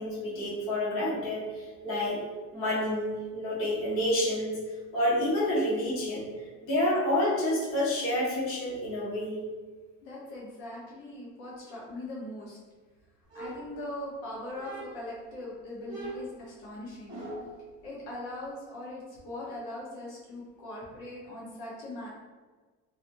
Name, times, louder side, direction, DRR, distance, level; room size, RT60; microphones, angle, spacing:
voice 1, 0.0-2.2 2.5-4.6 4.9-6.3 6.6-9.4, left 1 dB, 45° left, -8 dB, 1.3 m, -29 dB
voice 2, 10.0-12.6 13.3-17.2 17.8-22.1, left 1 dB, 80° left, -6 dB, 1.1 m, -40 dB
sound 1, 13.3-14.2 14.6-15.2 15.9-17.6, right 2 dB, 20° right, 1.4 m, -42 dB
3.0 x 2.9 x 2.6 m, 1.3 s
cardioid pair, 165°, 30 cm